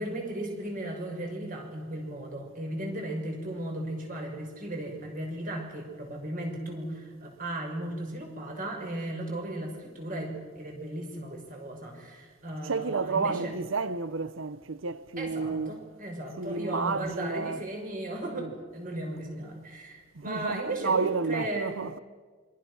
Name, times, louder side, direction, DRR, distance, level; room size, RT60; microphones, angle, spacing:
voice 1, 0.0-13.5 15.2-21.8, right 1 dB, 45° right, 6.4 m, -36 dB
voice 2, 12.6-15.8 16.4-17.6 18.4-18.5 20.1-22.0, right 4 dB, 85° right, 0.8 m, -31 dB
27.0 x 24.5 x 6.5 m
head